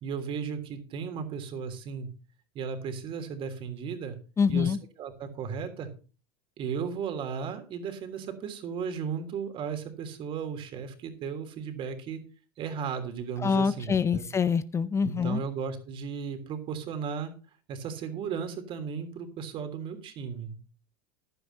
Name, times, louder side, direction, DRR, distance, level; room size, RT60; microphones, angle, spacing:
voice 1, 0.0-2.1 2.5-4.2 4.5-5.9 6.6-12.2 12.6-14.3 15.0-17.3 17.7-20.6, right 6 dB, 45° right, 7 dB, 3.2 m, -35 dB
voice 2, 4.4-4.8 13.4-15.4, left 6 dB, 20° left, 15 dB, 0.6 m, -25 dB
15.0 x 11.0 x 2.8 m, 0.35 s
hypercardioid pair, 90°, 12 cm